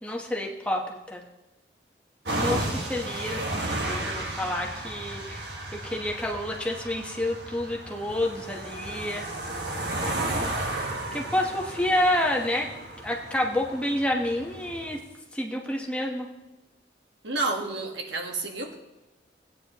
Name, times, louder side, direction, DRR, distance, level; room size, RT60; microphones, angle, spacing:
voice 1, 0.0-1.2 2.4-5.5 5.7-9.3 9.8-10.5 11.1-12.7 13.0-15.0 15.3-16.3, left 1 dB, 5° left, -1 dB, 1.2 m, -29 dB
sound 1, 2.3-15.0, right 1 dB, 75° right, 1.7 m, -33 dB
voice 2, 17.2-18.8, right 3 dB, 90° right, 2 dB, 1.6 m, -30 dB
17.5 x 9.3 x 3.0 m, 1.0 s
head